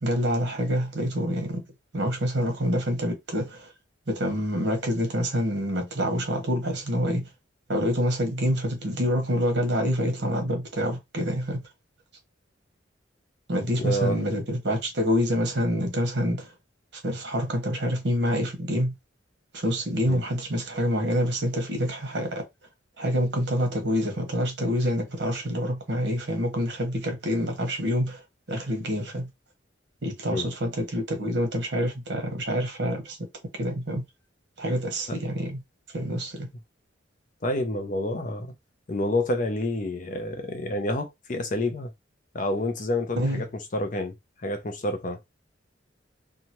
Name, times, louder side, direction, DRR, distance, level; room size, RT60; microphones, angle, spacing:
voice 1, 0.0-1.6 1.9-3.7 4.1-7.3 7.7-11.6 13.5-16.5 17.0-18.9 19.5-22.4 23.0-28.2 28.5-29.3 30.0-33.2 33.6-34.0 34.6-35.6 35.9-36.5 43.1-43.4, equal, 60° right, 1.1 m, -27 dB
voice 2, 13.7-14.2 20.1-20.2 30.3-30.5 35.1-35.2 37.4-38.6 38.9-41.9 42.3-44.1 44.4-45.2, left 1 dB, 45° left, 0.6 m, -28 dB
2.8 x 2.4 x 2.9 m
head